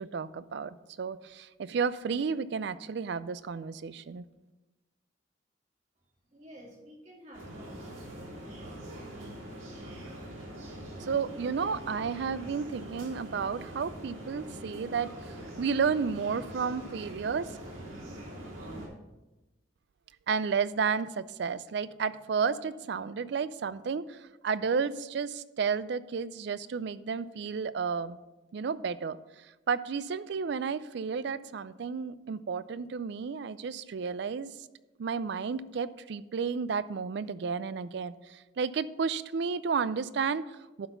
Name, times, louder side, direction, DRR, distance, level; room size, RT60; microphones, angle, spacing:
voice 1, 0.0-4.3 11.0-15.1 15.6-17.6 20.3-24.2 24.4-28.2 28.5-29.2 29.7-34.5 35.0-40.9, right 5 dB, 60° right, 16 dB, 0.4 m, -32 dB
voice 2, 6.3-8.3 8.6-9.2, equal, 35° right, -2 dB, 2.1 m, -52 dB
sound 1, 7.3-18.9, right 1 dB, 85° right, 2.8 m, -43 dB
11.5 x 4.2 x 5.6 m, 1.1 s
head